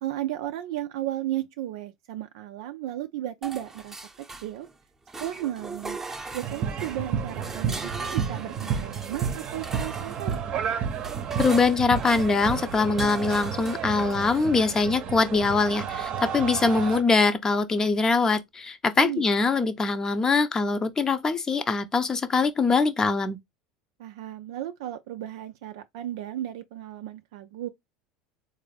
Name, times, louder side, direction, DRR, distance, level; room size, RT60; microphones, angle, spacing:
voice 1, 0.0-4.7 5.2-6.0 6.3-10.4 19.0-19.5 24.0-27.7, right 13 dB, 70° right, 0.3 m, -34 dB
sound 1, 3.4-4.8 5.1-14.5, right 3 dB, 15° right, 0.8 m, -40 dB
sound 2, 6.4-17.0, right 7 dB, 45° right, 0.7 m, -31 dB
voice 2, 11.4-23.4, left 4 dB, 25° left, 0.6 m, -23 dB
3.9 x 2.6 x 3.2 m
hypercardioid pair, 75°, 2 cm